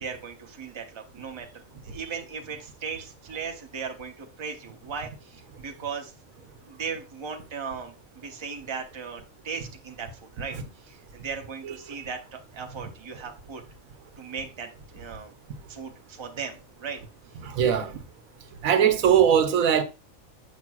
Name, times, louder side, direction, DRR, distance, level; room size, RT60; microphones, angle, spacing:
voice 1, 0.0-6.1 6.6-13.6 14.2-15.3 15.7-17.0, right 6 dB, 25° right, 0.7 m, -37 dB
voice 2, 11.7-12.1 17.4-18.0 18.6-19.8, right 8 dB, 85° right, 1.2 m, -21 dB
7.1 x 5.9 x 2.3 m
omnidirectional pair, 1.4 m